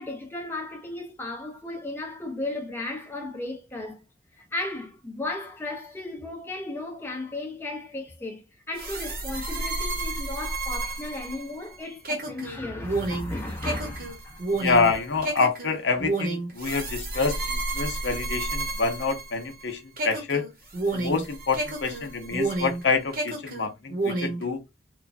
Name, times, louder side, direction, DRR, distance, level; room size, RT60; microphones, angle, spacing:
voice 1, 0.0-4.0 4.4-8.4 8.7-14.4, left 2 dB, 10° left, 0.6 m, -35 dB
sound 1, 8.8-19.6 20.0-22.8 23.1-24.4, right 2 dB, 50° right, 0.9 m, -30 dB
voice 2, 14.5-20.4 20.9-24.6, left 4 dB, 75° left, 0.7 m, -27 dB
3.1 x 2.2 x 2.5 m
head